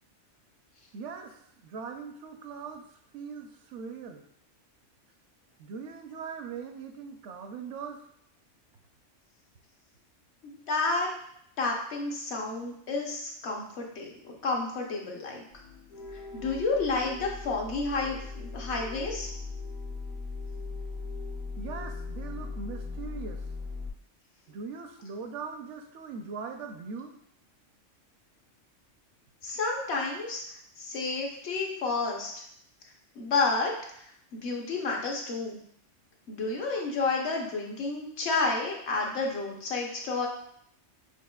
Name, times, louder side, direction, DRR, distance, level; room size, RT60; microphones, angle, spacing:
voice 1, 0.9-4.2 5.6-8.0 21.6-23.5 24.5-27.2, right 5 dB, 75° right, 5 dB, 0.9 m, -40 dB
voice 2, 10.4-11.1 11.6-15.4 16.3-19.3 29.4-30.4 30.8-32.3 33.2-35.6 36.3-40.3, left 3 dB, 65° left, -1 dB, 1.0 m, -30 dB
sound 1, 15.5-23.9, left 3 dB, 90° left, 1.4 m, -39 dB
6.4 x 3.0 x 2.2 m, 0.69 s
omnidirectional pair, 1.3 m